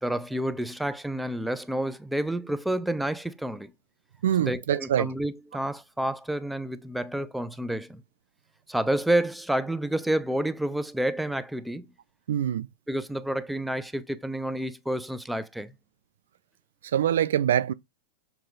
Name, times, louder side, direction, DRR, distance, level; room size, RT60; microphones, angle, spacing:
voice 1, 0.0-3.7 4.4-8.0 8.7-11.9 12.9-15.7, right 1 dB, 5° right, 0.7 m, -29 dB
voice 2, 4.2-5.1 12.3-12.7 16.8-17.7, right 10 dB, 75° right, 0.4 m, -24 dB
6.9 x 4.4 x 3.9 m
hypercardioid pair, 115°, 0 cm